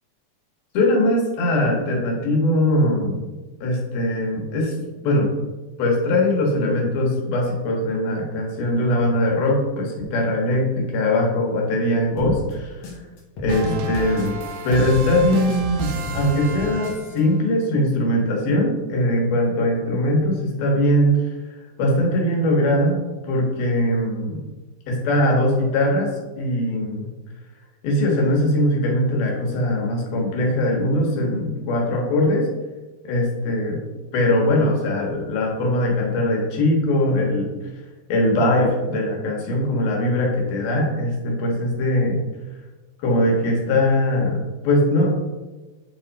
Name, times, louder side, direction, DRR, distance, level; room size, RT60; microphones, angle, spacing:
voice 1, 0.7-3.3 3.6-4.7 5.0-5.3 5.8-13.0 13.4-14.3 14.6-21.4 21.8-23.0 23.2-24.4 24.9-26.1 26.4-27.1 27.8-32.5 33.0-33.8 34.1-37.5 38.1-42.2 43.0-45.1, left 1 dB, 80° left, -1 dB, 3.2 m, -21 dB
sound 1, 12.2-14.5 14.8-17.2, right 1 dB, 65° left, 1.3 m, -33 dB
sound 2, 13.5-17.4, right 3 dB, 75° right, 2.2 m, -30 dB
8.6 x 3.4 x 4.0 m, 1.2 s
omnidirectional pair, 4.2 m